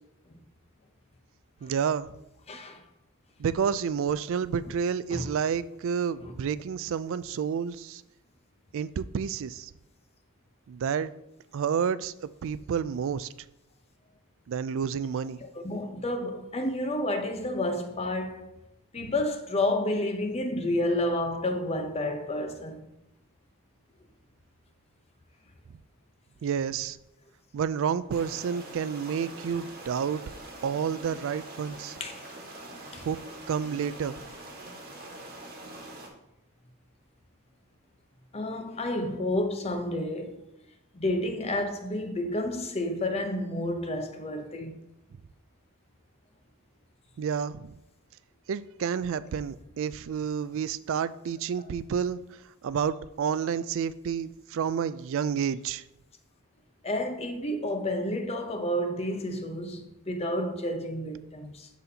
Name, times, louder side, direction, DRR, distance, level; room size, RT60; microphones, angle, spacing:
voice 1, 1.6-2.1 3.4-8.0 8.7-9.7 10.7-11.1 11.5-13.3 14.5-15.4 19.0-19.1 26.4-27.0 27.5-30.2 30.6-32.0 33.1-33.2 33.5-34.1 47.2-47.8 48.5-52.2 52.6-55.8, right 7 dB, 60° right, 0.3 m, -30 dB
voice 2, 2.5-2.8 5.1-5.3 6.2-6.3 15.4-18.5 18.9-22.8 32.0-32.1 32.9-33.0 38.3-40.4 40.9-44.8 56.8-61.7, left 1 dB, 30° left, 0.7 m, -30 dB
sound 1, 28.1-36.1, right 1 dB, 40° right, 1.4 m, -44 dB
12.0 x 4.1 x 2.8 m
head